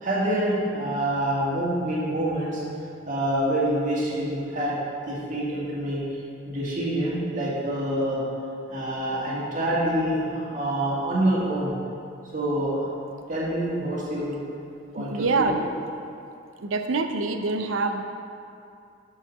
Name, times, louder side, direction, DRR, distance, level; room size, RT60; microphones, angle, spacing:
voice 1, 0.0-2.6 3.1-4.8 5.1-6.0 6.5-8.2 8.7-11.7 12.3-12.8 13.3-14.4 14.9-15.1 15.4-15.6, right 1 dB, 40° right, -7 dB, 1.9 m, -26 dB
voice 2, 15.0-15.6 16.6-18.0, right 3 dB, 85° right, 6 dB, 0.5 m, -25 dB
5.7 x 5.5 x 6.5 m, 2.6 s
head